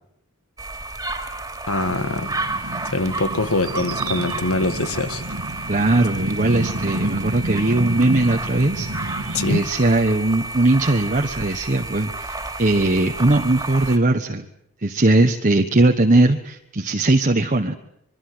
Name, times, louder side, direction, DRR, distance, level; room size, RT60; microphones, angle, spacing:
sound 1, 0.6-14.0, right 2 dB, 15° right, 3.0 m, -31 dB
voice 1, 1.7-2.3 2.9-5.2 9.3-9.6, left 2 dB, 75° left, 11 dB, 1.9 m, -23 dB
sound 2, 1.8-9.5, right 1 dB, 85° right, 2.2 m, -30 dB
voice 2, 5.7-8.9 9.5-14.5 14.8-17.8, right 2 dB, 35° right, 4 dB, 1.3 m, -19 dB
26.5 x 22.5 x 7.9 m, 0.75 s
head